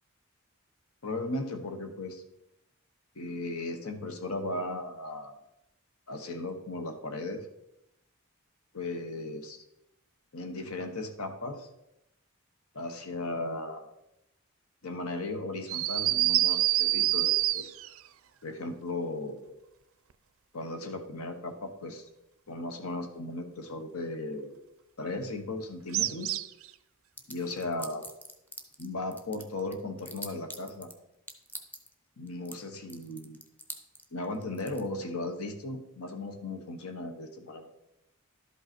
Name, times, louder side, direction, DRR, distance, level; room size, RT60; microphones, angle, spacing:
voice 1, 1.0-2.2 3.1-5.4 6.1-7.5 8.7-9.6 10.3-11.7 12.7-13.8 14.8-17.7 18.4-19.4 20.5-22.1 22.5-24.5 25.0-26.4 27.3-28.0 28.8-30.9 32.2-33.4 34.1-37.7, left 2 dB, 80° left, 6 dB, 1.2 m, -36 dB
sound 1, 15.7-18.0 25.9-26.7, right 15 dB, 65° right, 0.4 m, -26 dB
sound 2, 27.2-28.9 29.1-30.9 31.3-31.9 32.3-32.6 32.9-34.8, equal, 10° left, 0.7 m, -42 dB
11.5 x 5.4 x 4.4 m, 0.86 s
head